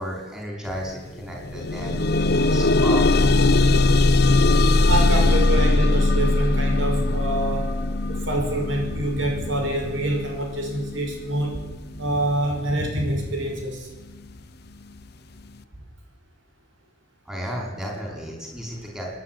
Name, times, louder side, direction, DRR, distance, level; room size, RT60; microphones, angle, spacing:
voice 1, 0.0-3.2 17.3-19.2, equal, 5° right, -2 dB, 5.4 m, -34 dB
sound 1, 0.7-0.8 1.2-12.2 13.0-13.1 13.6-13.7, left 2 dB, 55° left, 0.9 m, -20 dB
voice 2, 4.5-7.7 8.1-11.7 12.0-13.9, right 1 dB, 75° right, 2 dB, 5.6 m, -26 dB
29.0 x 11.0 x 9.7 m, 1.2 s
head